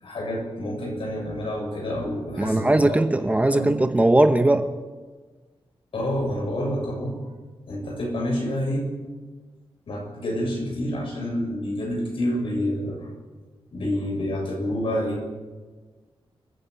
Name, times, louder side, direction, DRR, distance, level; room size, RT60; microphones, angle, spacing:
voice 1, 0.0-3.0 3.5-3.8 5.9-7.2 7.7-8.9 9.9-13.1 13.7-15.2, equal, 65° left, 0 dB, 7.2 m, -28 dB
voice 2, 2.4-4.7, right 1 dB, 15° right, 8 dB, 0.9 m, -19 dB
29.0 x 10.5 x 9.4 m, 1.3 s
wide cardioid pair, 160°, 10 cm